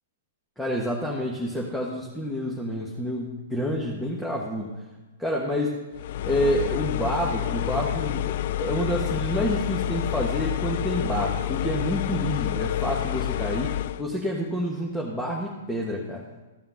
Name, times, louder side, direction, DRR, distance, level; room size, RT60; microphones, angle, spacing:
voice 1, 0.6-4.7 5.2-5.8 6.2-16.2, equal, 5° left, -3 dB, 1.4 m, -28 dB
sound 1, 5.9-14.0, left 13 dB, 55° left, 0.3 m, -28 dB
14.5 x 5.7 x 5.7 m, 1.2 s
hypercardioid pair, 130°, 0 cm